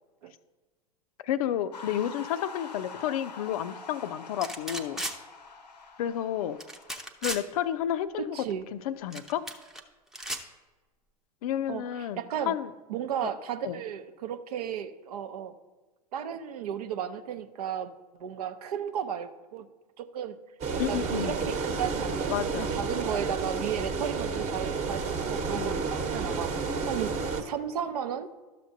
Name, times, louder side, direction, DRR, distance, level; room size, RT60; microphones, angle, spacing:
voice 1, 1.2-5.0 6.0-6.6 7.2-8.4 8.7-9.4 11.4-12.7 13.6-13.8 20.8-21.4 22.3-22.7 25.6-25.8, left 10 dB, 60° left, 13 dB, 0.5 m, -31 dB
sound 1, 1.7-6.9, left 4 dB, 85° left, 0.8 m, -45 dB
sound 2, 4.4-5.2 6.6-7.4 9.1-9.8 10.1-10.4, right 1 dB, ahead, 0.6 m, -35 dB
voice 2, 8.2-8.7 11.7-12.5 12.9-15.5 16.1-17.9 18.2-19.7 20.0-20.4 20.9-26.5 26.9-28.3, right 9 dB, 70° right, 10 dB, 0.6 m, -34 dB
sound 3, 20.6-27.4, right 4 dB, 30° right, 1.0 m, -31 dB
12.0 x 6.7 x 2.6 m, 1.2 s
hypercardioid pair, 95°, 21 cm